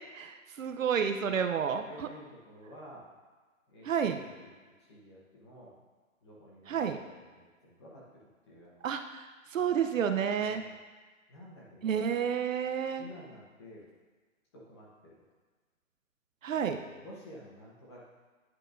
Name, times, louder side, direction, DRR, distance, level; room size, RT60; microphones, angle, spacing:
voice 1, 0.1-2.1 3.8-4.2 6.7-7.0 8.8-9.2 9.5-10.6 11.8-13.0 16.4-16.8, right 7 dB, 70° right, 7 dB, 0.7 m, -30 dB
voice 2, 1.8-3.0 3.7-4.5 4.8-5.7 6.2-8.2 8.5-8.9 10.4-10.8 11.3-12.1 13.0-13.9 14.5-15.2 16.8-18.0, equal, 20° left, -5 dB, 1.1 m, -51 dB
10.5 x 4.5 x 2.6 m, 1.4 s
hypercardioid pair, 170°, 41 cm